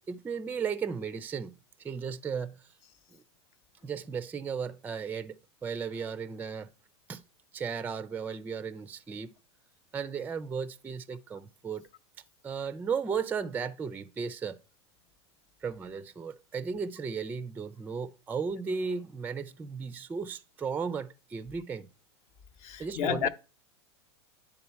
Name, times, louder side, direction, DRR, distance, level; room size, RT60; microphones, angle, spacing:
voice 1, 0.1-1.5 1.8-2.7 3.1-3.2 3.8-6.7 7.1-7.2 7.5-9.3 9.9-11.9 12.4-14.6 15.6-21.9 22.8-23.3, right 6 dB, 15° right, 0.4 m, -35 dB
voice 2, 22.6-23.3, left 9 dB, 50° left, 0.7 m, -30 dB
10.0 x 3.8 x 4.3 m
hypercardioid pair, 95°, 14 cm